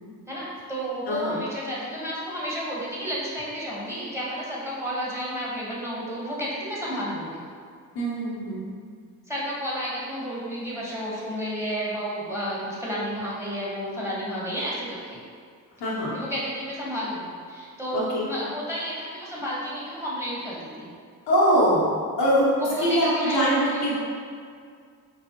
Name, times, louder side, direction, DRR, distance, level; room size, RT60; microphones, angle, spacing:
voice 1, 0.3-7.5 9.3-15.2 16.1-20.9 22.6-23.0 23.3-24.0, equal, 5° right, -7 dB, 1.4 m, -31 dB
voice 2, 1.1-1.4 7.9-8.7 15.8-16.2 17.9-18.3 21.3-24.0, equal, 80° left, -7 dB, 1.0 m, -23 dB
5.5 x 2.0 x 2.9 m, 2.1 s
supercardioid pair, 45°, 41 cm